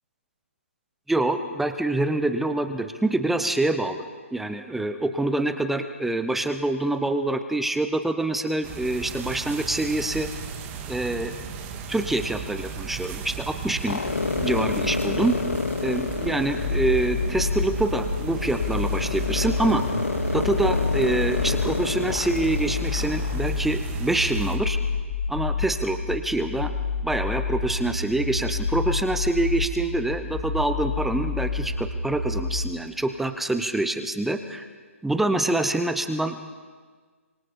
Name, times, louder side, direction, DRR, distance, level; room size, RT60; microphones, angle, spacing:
voice 1, 1.1-10.3 10.9-11.4 11.9-14.0 14.4-15.4 15.8-19.8 20.3-24.8 25.3-26.7 27.0-34.7 35.0-36.4, right 2 dB, 5° right, 9 dB, 0.8 m, -26 dB
sound 1, 8.6-24.6, right 5 dB, 25° right, 2.0 m, -36 dB
sound 2, 13.9-23.5, left 4 dB, 70° left, 0.9 m, -30 dB
sound 3, 16.6-32.6, left 4 dB, 40° left, 4.6 m, -29 dB
26.5 x 25.0 x 5.3 m, 1.5 s
figure-of-eight pair, 135°, 8 cm